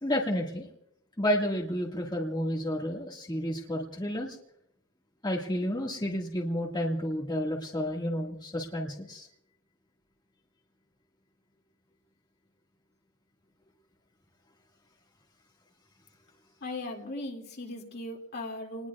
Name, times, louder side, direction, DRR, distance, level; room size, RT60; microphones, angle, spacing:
voice 1, 0.0-0.7 1.2-4.4 5.2-9.3, equal, 20° left, -2 dB, 1.8 m, -31 dB
voice 2, 16.6-18.9, left 2 dB, 50° left, 1 dB, 2.5 m, -38 dB
29.5 x 20.5 x 2.4 m, 0.73 s
head